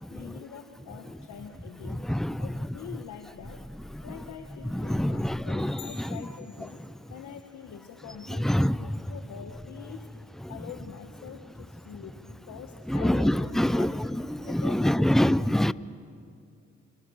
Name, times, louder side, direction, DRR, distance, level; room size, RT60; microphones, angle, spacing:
voice 1, 0.1-2.1 2.4-3.7 4.0-6.8 7.1-10.1 10.5-14.0 14.4-15.5, left 8 dB, 70° left, 6 dB, 1.5 m, -44 dB
voice 2, 1.8-2.5 3.9-4.0 4.7-6.2 8.4-8.8 12.9-15.7, left 1 dB, ahead, 17 dB, 0.6 m, -25 dB
sound 1, 5.8-7.5, left 7 dB, 90° left, 4.2 m, -51 dB
29.5 x 27.0 x 6.5 m, 2.4 s
cardioid pair, 90°, 30 cm